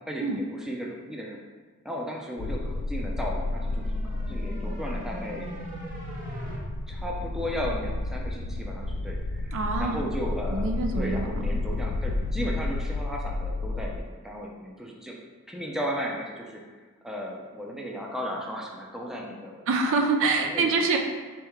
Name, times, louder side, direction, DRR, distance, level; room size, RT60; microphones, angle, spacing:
voice 1, 0.0-1.4 1.8-5.5 6.9-10.7 11.0-15.2 15.5-16.6 17.0-19.6 20.4-20.9, equal, ahead, -2 dB, 0.5 m, -35 dB
sound 1, 2.4-14.0, left 2 dB, 85° left, 0.4 m, -31 dB
sound 2, 3.3-6.6, equal, 40° right, 0.9 m, -40 dB
voice 2, 9.5-10.0 10.5-11.5 19.7-21.0, right 3 dB, 65° right, 3 dB, 0.4 m, -25 dB
4.5 x 3.5 x 3.0 m, 1.4 s
head